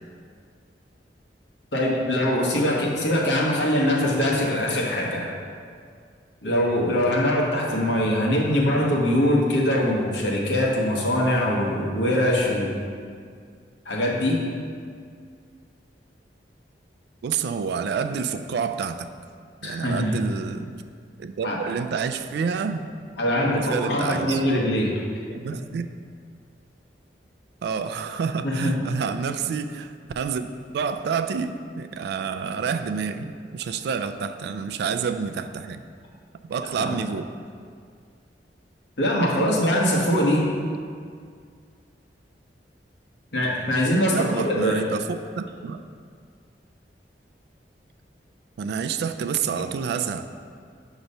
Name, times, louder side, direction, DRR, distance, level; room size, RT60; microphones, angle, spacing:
voice 1, 1.7-5.3 6.4-12.8 13.8-14.4 19.6-20.1 21.4-21.6 23.2-25.0 28.4-28.7 36.8-37.0 39.0-40.4 43.3-44.8, left 1 dB, 85° left, -2 dB, 1.1 m, -22 dB
voice 2, 17.2-19.1 19.6-20.7 21.2-22.9 23.5-24.4 25.3-25.8 27.6-30.5 30.7-35.8 36.5-37.3 44.1-45.1 45.4-45.8 48.6-50.3, right 6 dB, 65° right, 9 dB, 0.3 m, -28 dB
6.4 x 3.0 x 5.3 m, 2.1 s
head